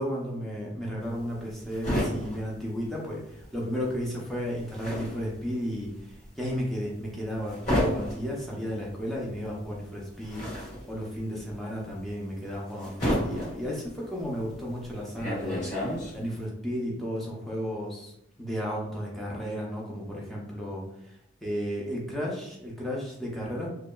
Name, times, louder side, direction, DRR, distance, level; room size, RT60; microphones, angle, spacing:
voice 1, 0.0-5.9 6.4-18.1 18.4-20.9 21.4-23.7, equal, ahead, -4 dB, 0.5 m, -33 dB
sound 1, 1.0-3.6 3.8-16.4, equal, 35° left, 1.1 m, -32 dB
2.8 x 2.2 x 2.2 m, 0.80 s
head